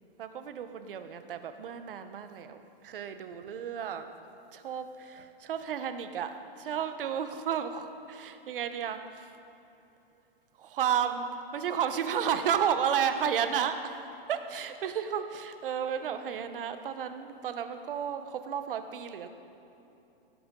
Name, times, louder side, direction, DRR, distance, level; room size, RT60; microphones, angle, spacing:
voice 1, 0.2-4.1 4.5-9.3 10.6-11.3 11.5-13.8 14.3-19.3, right 8 dB, 60° right, 9 dB, 1.0 m, -32 dB
17.5 x 11.0 x 3.8 m, 2.9 s
hypercardioid pair, 175°, 31 cm